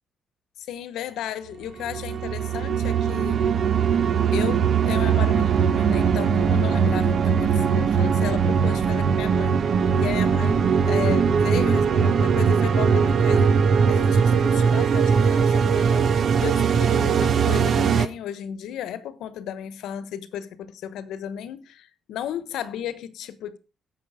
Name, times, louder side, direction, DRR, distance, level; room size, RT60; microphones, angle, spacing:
voice 1, 0.6-3.5 4.3-9.6 9.9-13.5 13.9-16.1 16.4-23.6, left 10 dB, 85° left, 1.0 m, -34 dB
sound 1, 1.8-18.1, right 6 dB, 60° right, 1.0 m, -20 dB
11.0 x 7.5 x 4.9 m
cardioid pair, 90°, 0 cm